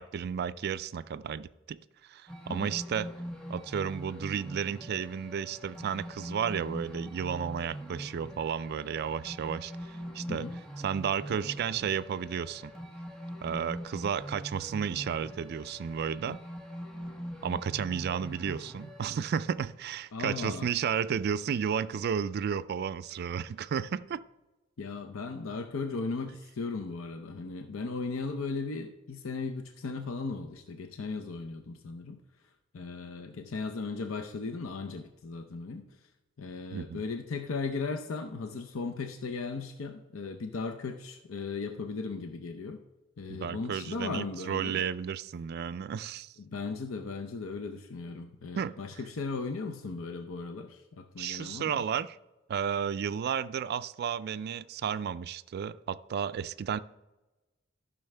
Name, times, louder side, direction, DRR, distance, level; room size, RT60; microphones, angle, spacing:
voice 1, 0.0-1.8 2.1-3.1 3.5-10.5 10.8-12.7 13.4-16.4 17.4-24.2 36.7-37.0 43.3-46.3 48.6-48.7 51.2-52.2 52.5-56.8, right 7 dB, 50° right, 0.3 m, -33 dB
sound 1, 2.3-19.1, equal, 5° left, 1.2 m, -43 dB
voice 2, 20.1-20.7 24.8-32.2 32.7-35.9 36.4-42.8 43.2-44.8 46.4-51.8, left 4 dB, 80° left, 0.6 m, -37 dB
14.0 x 6.1 x 3.3 m
head